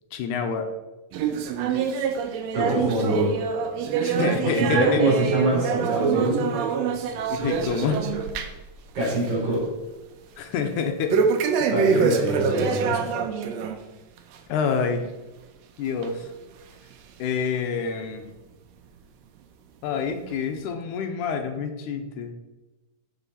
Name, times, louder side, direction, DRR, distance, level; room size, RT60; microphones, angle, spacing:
voice 1, 0.1-0.6 4.0-5.0 7.3-8.0 10.4-11.2 11.6-12.2 14.5-15.0 15.8-16.2 17.2-18.2 19.8-22.3, left 6 dB, 80° left, 6 dB, 2.1 m, -27 dB
sound 1, 1.1-8.7 9.0-9.3 9.7-9.8 11.1-13.8 14.2-14.4 15.0-15.1 16.0-16.1 16.9-17.0, right 6 dB, 80° right, 1.6 m, -25 dB
voice 2, 2.5-3.3 4.6-6.5 8.9-9.6 11.7-13.0, right 1 dB, 45° right, -4 dB, 3.7 m, -24 dB
7.0 x 6.1 x 4.1 m, 1.1 s
omnidirectional pair, 3.7 m